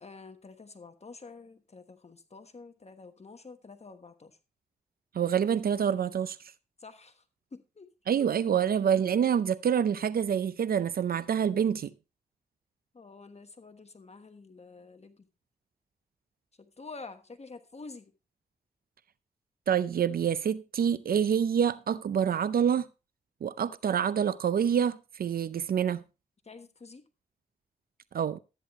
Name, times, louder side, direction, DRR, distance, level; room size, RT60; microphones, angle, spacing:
voice 1, 0.0-4.4 6.8-7.2 7.5-7.9 12.9-15.3 16.6-18.1 26.4-27.0, left 4 dB, 45° left, 1.2 m, -48 dB
voice 2, 5.1-6.4 8.1-11.9 19.7-22.9 23.4-26.0 28.1-28.4, right 8 dB, 70° right, 0.5 m, -27 dB
13.0 x 9.7 x 3.0 m
cardioid pair, 55°, 16 cm